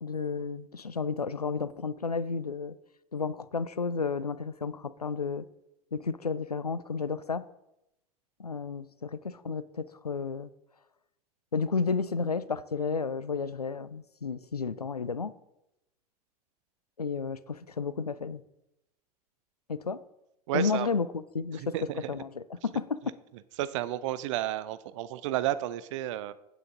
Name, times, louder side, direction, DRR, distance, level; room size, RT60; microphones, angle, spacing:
voice 1, 0.0-2.8 3.1-5.5 5.9-7.5 8.4-10.5 11.5-15.3 17.0-18.4 19.7-20.0 20.5-21.7 22.1-23.0, left 5 dB, 85° left, 16 dB, 0.4 m, -32 dB
voice 2, 20.5-20.9 21.5-22.1 23.6-26.3, right 13 dB, 55° right, 15 dB, 0.5 m, -32 dB
9.4 x 7.9 x 3.8 m, 0.86 s
figure-of-eight pair, 75°, 19 cm